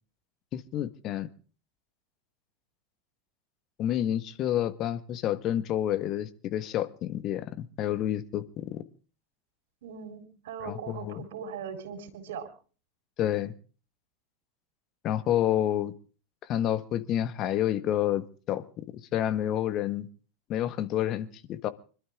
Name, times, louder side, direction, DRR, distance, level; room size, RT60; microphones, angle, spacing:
voice 1, 0.5-1.3 3.8-8.8 10.6-11.2 13.2-13.5 15.0-15.9 16.5-18.8 19.1-20.1 20.5-21.7, left 11 dB, 40° left, 12 dB, 1.4 m, -29 dB
voice 2, 9.8-12.5, right 6 dB, 65° right, 9 dB, 4.0 m, -39 dB
25.5 x 12.5 x 3.7 m, 0.39 s
figure-of-eight pair, 85°, 0 cm